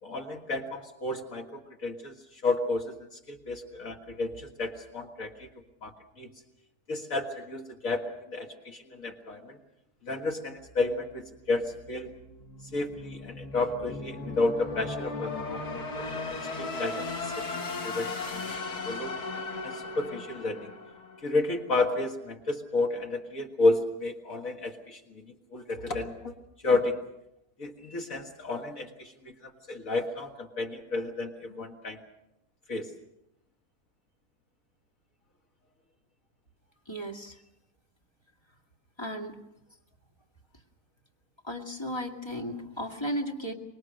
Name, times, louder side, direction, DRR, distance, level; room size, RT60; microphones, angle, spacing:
voice 1, 0.0-5.5 5.8-6.3 6.9-9.6 10.0-12.1 12.7-18.6 18.8-19.2 19.6-20.7 21.2-26.3 26.6-27.0 27.6-32.0 32.7-32.9, left 2 dB, 55° left, 3 dB, 2.1 m, -32 dB
sound 1, 10.6-21.6, left 3 dB, 70° left, 2.4 m, -37 dB
voice 2, 36.9-37.4 39.0-39.4 41.4-43.5, equal, 15° left, 1 dB, 2.3 m, -35 dB
25.0 x 21.5 x 6.5 m, 0.85 s
omnidirectional pair, 1.7 m